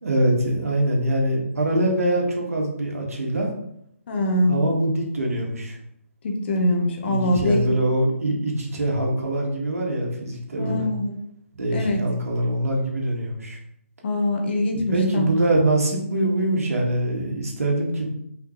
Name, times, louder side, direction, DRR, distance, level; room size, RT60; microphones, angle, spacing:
voice 1, 0.0-3.5 4.5-5.8 7.0-10.9 11.5-13.6 14.9-18.1, right 1 dB, 80° right, -1 dB, 2.0 m, -23 dB
voice 2, 4.1-4.5 6.2-7.6 10.6-11.1 11.7-12.0 14.0-15.3, left 1 dB, 50° left, 2 dB, 1.4 m, -23 dB
5.9 x 4.9 x 3.3 m, 0.74 s
hypercardioid pair, 150°, 8 cm